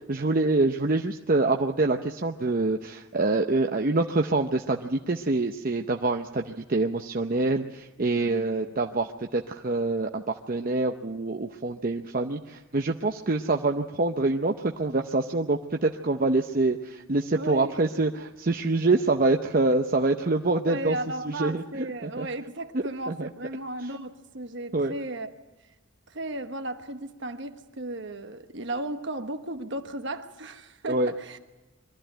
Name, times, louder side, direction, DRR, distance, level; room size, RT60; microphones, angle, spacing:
voice 1, 0.0-21.0 21.2-22.3 22.7-23.3 24.7-24.9 30.9-31.1, right 2 dB, 45° right, 4 dB, 0.7 m, -26 dB
voice 2, 8.2-8.5 8.8-9.0 17.3-17.7 20.6-25.3 26.1-31.4, right 2 dB, 60° right, 7 dB, 1.3 m, -35 dB
23.0 x 13.5 x 8.9 m, 1.1 s
head